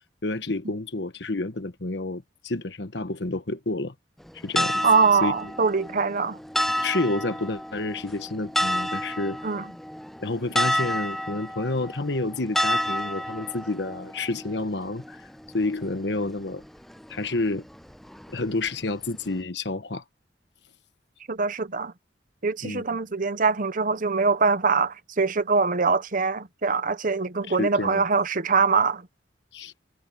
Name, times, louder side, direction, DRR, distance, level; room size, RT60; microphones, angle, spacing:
voice 1, 0.2-3.9 4.4-4.8 5.2-5.3 6.8-9.4 10.2-15.3 15.5-16.6 17.1-17.6 18.3-20.0 22.6-22.8 27.5-28.0 29.5-29.7, left 2 dB, 70° left, 1.3 m, -29 dB
sound 1, 4.2-19.4, equal, ahead, 0.3 m, -31 dB
voice 2, 4.8-6.4 9.4-9.6 21.3-21.9 22.4-29.1, right 4 dB, 50° right, 1.0 m, -23 dB
head